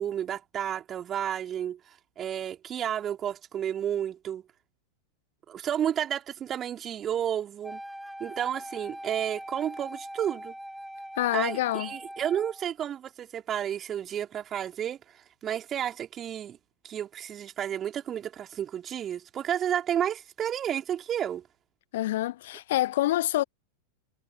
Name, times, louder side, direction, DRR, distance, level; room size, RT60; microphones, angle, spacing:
voice 1, 0.0-1.8 2.2-4.4 5.5-7.8 8.2-10.5 11.3-15.0 15.4-16.6 16.8-21.4, right 10 dB, 25° right, 4.3 m, -31 dB
Wind instrument woodwind instrument, 7.6-12.7, equal, ahead, 2.7 m, -42 dB
voice 2, 11.2-11.9 21.9-23.4, left 15 dB, 55° left, 0.6 m, -27 dB
figure-of-eight pair, 90°, 0 cm